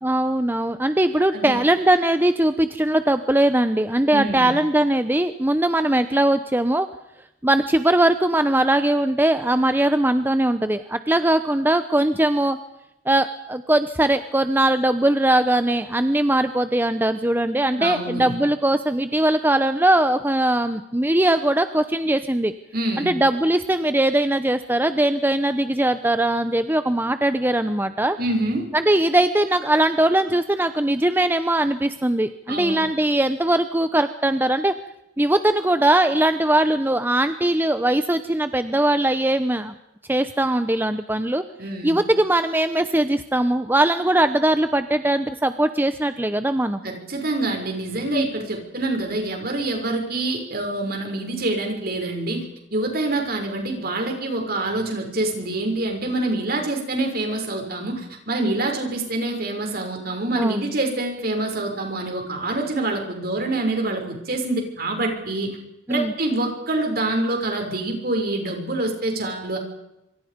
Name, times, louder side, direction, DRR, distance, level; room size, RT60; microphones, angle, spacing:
voice 1, 0.0-6.9 7.4-12.6 13.1-22.5 23.0-28.2 28.7-34.7 35.2-39.7 40.1-41.4 41.8-46.8 48.0-48.3 60.3-60.6 65.9-66.1, right 1 dB, 10° right, 10 dB, 0.8 m, -20 dB
voice 2, 4.1-4.5 17.8-18.3 22.7-23.2 28.2-28.7 32.5-32.9 41.6-42.0 46.8-52.4 52.7-65.6 65.9-69.6, right 2 dB, 50° right, 3 dB, 6.5 m, -26 dB
26.5 x 26.0 x 5.3 m, 0.87 s
head